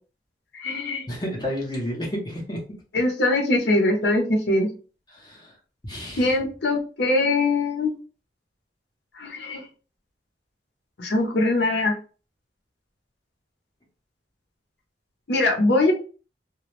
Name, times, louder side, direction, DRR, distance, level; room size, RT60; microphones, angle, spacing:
voice 1, 0.5-1.1 2.9-4.7 6.2-7.9 9.2-9.6 11.0-12.0 15.3-15.9, left 2 dB, 65° left, 1 dB, 0.7 m, -22 dB
voice 2, 1.1-2.6 5.1-5.5 5.8-6.4, equal, 25° left, -2 dB, 0.7 m, -31 dB
2.2 x 2.0 x 3.0 m, 0.37 s
head